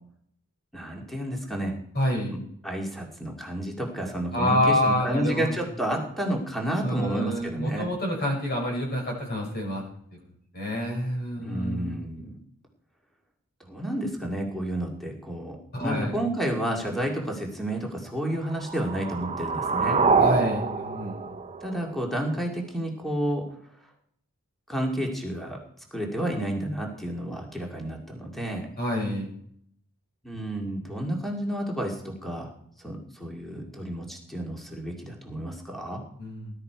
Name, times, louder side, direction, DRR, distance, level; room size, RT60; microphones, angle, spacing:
voice 1, 0.7-1.7 2.6-7.9 11.4-12.4 13.6-20.0 21.6-23.4 24.7-25.6 25.9-28.7 30.2-32.5 32.8-36.0, right 1 dB, ahead, 0 dB, 2.3 m, -31 dB
voice 2, 1.9-2.4 4.3-5.5 6.8-9.8 10.5-11.9 15.7-16.1 20.2-21.3 28.8-29.3 36.2-36.5, left 1 dB, 45° left, -1 dB, 6.0 m, -27 dB
sound 1, 18.4-22.4, right 4 dB, 30° right, 0.7 m, -26 dB
19.0 x 12.0 x 4.7 m, 0.67 s
head